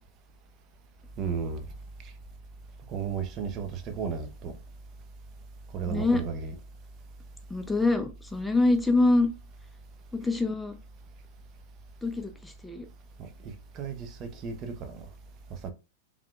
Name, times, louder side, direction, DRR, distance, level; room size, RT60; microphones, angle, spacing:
voice 1, 1.2-1.6 2.9-4.5 5.7-6.5 13.2-15.0 15.6-15.7, right 6 dB, 40° right, 0.9 m, -34 dB
voice 2, 5.8-6.2 7.5-9.3 10.1-10.8 12.0-12.9, left 2 dB, 5° left, 0.7 m, -25 dB
4.7 x 3.6 x 2.4 m
hypercardioid pair, 100°, 0 cm